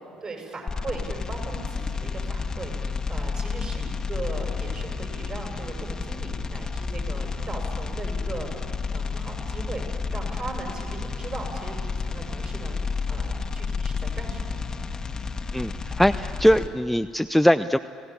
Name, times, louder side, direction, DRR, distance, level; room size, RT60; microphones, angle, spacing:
voice 1, 0.2-2.7 3.1-9.8 10.1-12.8 13.1-14.7, right 3 dB, 40° right, 1 dB, 7.6 m, -38 dB
sound 1, 0.7-16.7, left 4 dB, 30° left, 1.6 m, -31 dB
voice 2, 15.5-17.8, equal, 5° left, 10 dB, 0.6 m, -21 dB
30.0 x 18.0 x 8.8 m, 2.5 s
hypercardioid pair, 55°, 2 cm